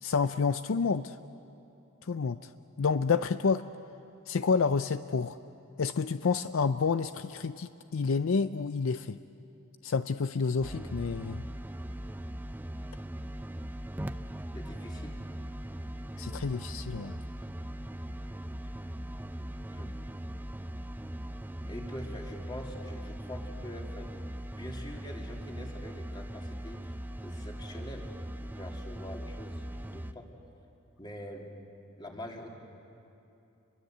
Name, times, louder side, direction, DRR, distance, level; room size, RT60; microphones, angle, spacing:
voice 1, 0.0-1.2 2.0-2.5 2.8-3.6 4.3-5.4 5.8-9.2 9.8-11.4 16.2-17.2, left 5 dB, 65° left, 11 dB, 0.5 m, -29 dB
sound 1, 10.6-30.1, right 1 dB, 10° right, 0.6 m, -40 dB
voice 2, 14.5-15.2 19.7-20.0 21.7-24.1 24.6-26.9 27.2-28.1 28.6-30.3 31.0-31.5 32.0-32.5, left 1 dB, 20° left, 0 dB, 2.9 m, -44 dB
29.0 x 22.5 x 8.1 m, 2.7 s
head